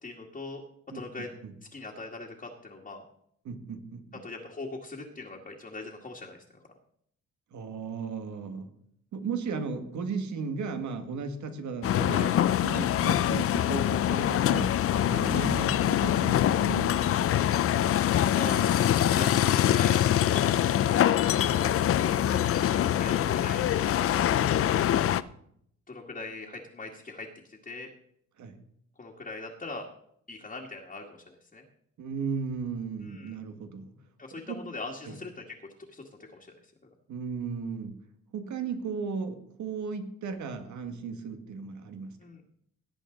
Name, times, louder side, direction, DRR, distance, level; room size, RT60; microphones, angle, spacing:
voice 1, 0.0-0.6 0.9-1.3 1.7-3.0 4.1-6.4 18.3-20.6 21.4-21.8 22.0-23.6 24.2-24.7 25.9-27.9 29.0-29.9 30.3-31.6 33.0-33.4 34.2-36.0 36.3-36.5 42.2-42.4, left 3 dB, 25° left, -2 dB, 1.8 m, -41 dB
voice 2, 3.4-4.2 7.5-8.7 9.1-12.4 12.6-14.7 15.1-17.3 28.4-28.6 32.0-33.9 34.3-34.6 35.1-35.2 37.1-38.0 38.3-42.2, right 5 dB, 70° right, 7 dB, 1.8 m, -35 dB
sound 1, 11.8-25.2, left 11 dB, 50° left, 0.5 m, -24 dB
18.0 x 8.3 x 3.9 m, 0.69 s
cardioid pair, 90°, 30 cm